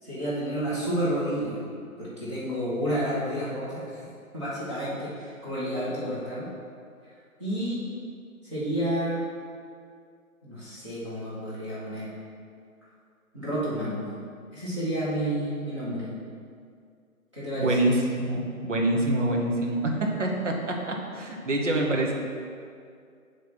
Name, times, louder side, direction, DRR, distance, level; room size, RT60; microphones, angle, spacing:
voice 1, 0.0-1.6 2.0-4.1 4.3-6.5 7.4-7.9 8.4-9.2 10.4-12.1 13.3-14.0 14.5-16.1 17.3-17.8, equal, 20° right, -11 dB, 1.1 m, -30 dB
voice 2, 17.6-22.1, right 1 dB, 55° right, 0 dB, 1.1 m, -26 dB
8.9 x 3.3 x 4.3 m, 2.3 s
figure-of-eight pair, 165°, 43 cm